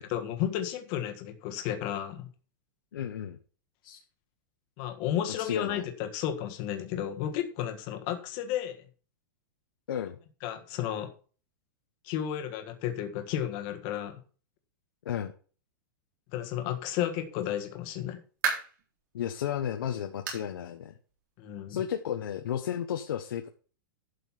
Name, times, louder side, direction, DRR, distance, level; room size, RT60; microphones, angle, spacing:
voice 1, 0.0-2.3 4.8-8.8 10.4-11.1 12.0-14.2 16.3-18.2 21.4-21.8, left 10 dB, 30° left, 6 dB, 1.5 m, -33 dB
voice 2, 2.9-3.4 3.8-4.0 5.4-5.8 9.9-10.2 15.0-15.3 19.1-21.0 21.7-23.5, left 9 dB, 75° left, 6 dB, 1.2 m, -33 dB
sound 1, 17.8-18.9 19.4-19.5 20.3-20.5 20.8-20.9 21.5-21.6 22.6-22.7, right 6 dB, 50° right, 4.0 m, -33 dB
11.5 x 5.5 x 5.8 m, 0.39 s
supercardioid pair, 180°, 12 cm